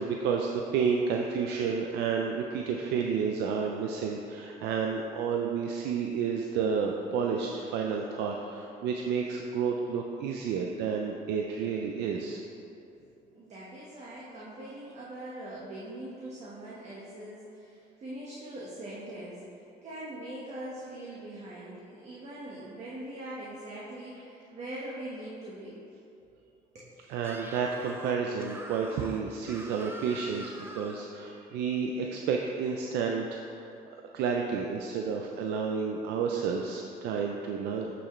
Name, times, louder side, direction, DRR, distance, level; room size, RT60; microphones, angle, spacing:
voice 1, 0.0-12.4 27.1-33.7 34.1-37.9, right 6 dB, 85° right, 1 dB, 0.5 m, -31 dB
voice 2, 13.0-25.8 26.2-26.3 26.7-26.9, right 1 dB, 40° right, -7 dB, 1.4 m, -42 dB
Screaming, 27.2-31.1, right 1 dB, 15° right, 0.6 m, -45 dB
8.9 x 6.2 x 3.2 m, 2.7 s
cardioid pair, 110°, 17 cm